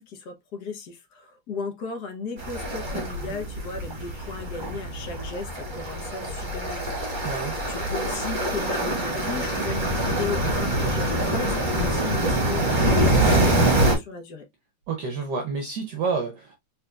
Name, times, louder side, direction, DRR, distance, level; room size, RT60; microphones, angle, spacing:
voice 1, 0.0-14.4, left 5 dB, 55° left, 1.3 m, -36 dB
sound 1, 2.4-14.0, right 1 dB, 25° right, 1.3 m, -25 dB
voice 2, 7.2-7.5 14.9-16.5, right 4 dB, 65° right, 1.2 m, -29 dB
4.2 x 3.6 x 2.3 m
omnidirectional pair, 2.4 m